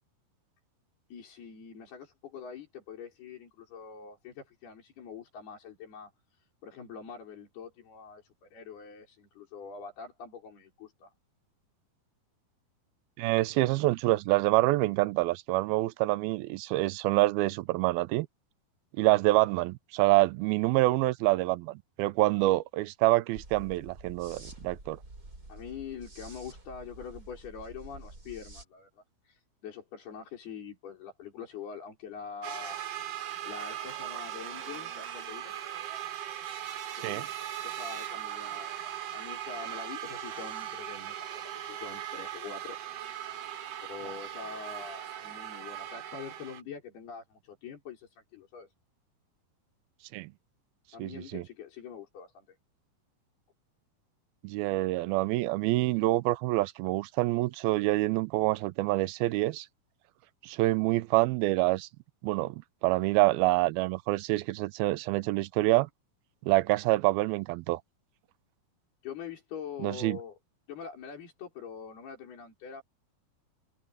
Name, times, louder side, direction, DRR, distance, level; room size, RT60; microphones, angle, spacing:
voice 1, 1.1-11.1 25.5-32.8 33.5-35.5 37.0-37.3 37.6-42.8 43.8-48.7 50.9-52.6 69.0-70.4 70.7-72.8, left 6 dB, 85° left, 7.1 m, -44 dB
voice 2, 13.2-18.3 19.0-25.0 37.0-37.2 50.1-50.3 51.0-51.4 54.4-59.7 60.4-61.9 62.2-65.9 66.5-67.8 69.8-70.2, right 19 dB, 80° right, 2.4 m, -26 dB
sound 1, 23.3-28.6, right 2 dB, 20° right, 6.0 m, -48 dB
sound 2, 32.4-46.6, right 11 dB, 60° right, 1.8 m, -39 dB
omnidirectional pair, 4.4 m